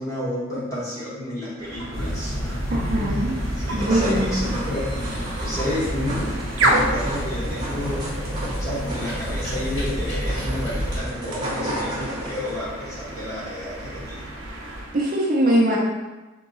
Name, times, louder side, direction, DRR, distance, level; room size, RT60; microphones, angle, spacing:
voice 1, 0.0-8.1 8.6-14.3, left 1 dB, 15° left, -9 dB, 1.2 m, -31 dB
sound 1, 1.6-15.0, right 1 dB, 80° right, 0.7 m, -31 dB
sound 2, 1.9-11.0, equal, 75° left, 1.0 m, -29 dB
voice 2, 2.7-4.4 14.9-15.8, right 1 dB, 45° right, -3 dB, 0.6 m, -22 dB
sound 3, 3.5-12.6, right 1 dB, 20° right, 1.0 m, -32 dB
3.7 x 2.9 x 3.9 m, 1.2 s
head